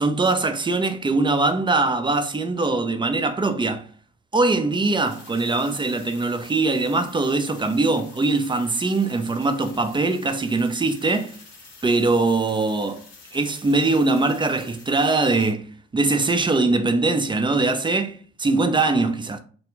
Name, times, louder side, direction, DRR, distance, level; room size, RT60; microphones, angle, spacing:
voice 1, 0.0-3.9 4.3-11.4 11.8-13.0 13.3-19.4, right 3 dB, 15° right, 0.4 m, -22 dB
sound 1, 4.7-15.5, left 4 dB, 80° left, 0.9 m, -48 dB
2.3 x 2.3 x 3.0 m
hypercardioid pair, 50°, 37 cm